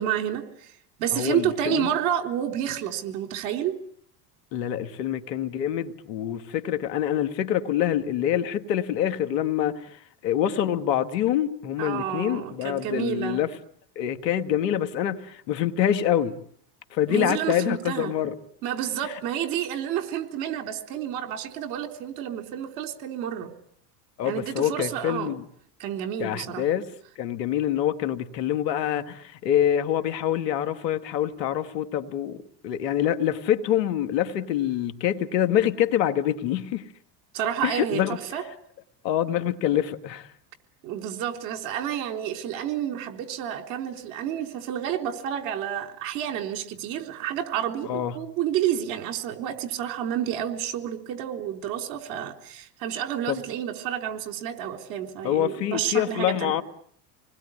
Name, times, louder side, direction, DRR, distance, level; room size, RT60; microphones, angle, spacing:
voice 1, 0.0-3.8 11.8-13.4 17.1-18.1 18.6-23.5 24.2-25.3 25.8-26.6 37.3-38.0 38.3-38.4 40.8-56.5, right 10 dB, 70° right, 3.9 m, -30 dB
voice 2, 1.1-1.9 4.5-13.5 14.0-16.3 16.9-18.4 19.0-19.2 24.2-25.4 26.2-26.9 27.2-36.9 37.6-38.2 39.0-40.3 47.8-48.2 53.3-53.4 55.2-56.6, left 10 dB, 80° left, 2.2 m, -26 dB
27.0 x 20.5 x 9.9 m
hypercardioid pair, 90°, 49 cm